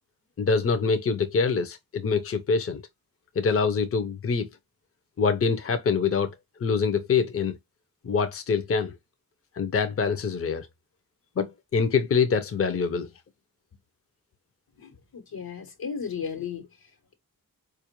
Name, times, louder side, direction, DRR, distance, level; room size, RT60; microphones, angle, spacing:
voice 1, 0.4-2.8 3.4-4.5 5.2-6.3 6.6-7.6 8.0-8.9 9.6-10.7 11.4-13.1, left 5 dB, 40° left, 0.6 m, -25 dB
voice 2, 14.8-16.6, left 6 dB, 80° left, 1.2 m, -35 dB
4.3 x 2.4 x 2.9 m
cardioid pair, 60°, 36 cm